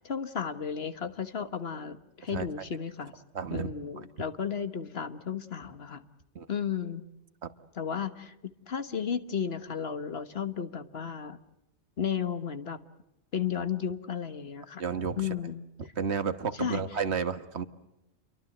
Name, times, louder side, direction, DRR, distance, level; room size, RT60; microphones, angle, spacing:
voice 1, 0.0-3.1 3.5-6.0 6.5-7.0 7.7-8.3 8.7-11.4 12.0-12.8 13.3-14.8 15.2-15.7 16.6-16.8, left 7 dB, 65° left, 11 dB, 1.6 m, -33 dB
voice 2, 3.3-3.7 6.3-6.5 7.4-7.5 14.8-15.2 16.0-17.6, right 6 dB, 75° right, 11 dB, 1.6 m, -31 dB
29.5 x 23.5 x 7.9 m, 0.86 s
omnidirectional pair, 1.1 m